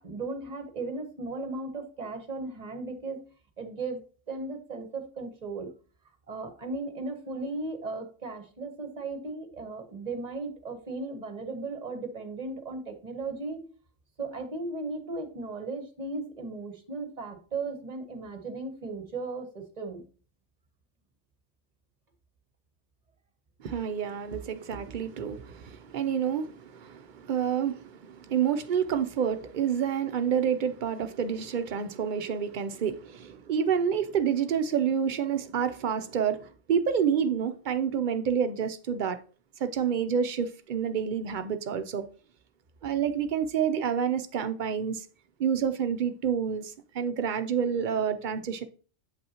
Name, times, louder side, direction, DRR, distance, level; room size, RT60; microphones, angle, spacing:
voice 1, 0.0-3.2 3.6-4.0 4.3-5.7 6.3-13.6 14.2-20.1 35.5-35.6, right 3 dB, 35° right, 1.0 m, -36 dB
voice 2, 23.6-39.2 39.6-42.0 42.8-45.1 45.4-48.6, right 7 dB, 60° right, 0.5 m, -28 dB
7.9 x 5.3 x 2.8 m
omnidirectional pair, 1.3 m